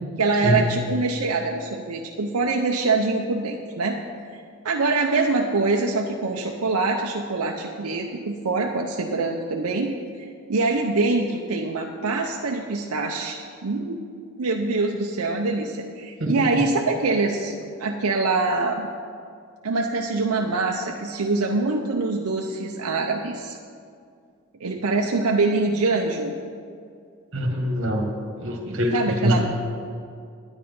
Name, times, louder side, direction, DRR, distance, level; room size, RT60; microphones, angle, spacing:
voice 1, 0.2-4.0 4.3-4.4 4.6-14.0 14.4-17.5 17.8-18.9 19.6-23.6 24.6-26.3 28.9-29.5, right 3 dB, 85° right, 1 dB, 0.7 m, -24 dB
voice 2, 27.3-28.1 28.4-29.5, equal, 60° right, 2 dB, 1.8 m, -23 dB
10.0 x 9.8 x 5.4 m, 2.3 s
head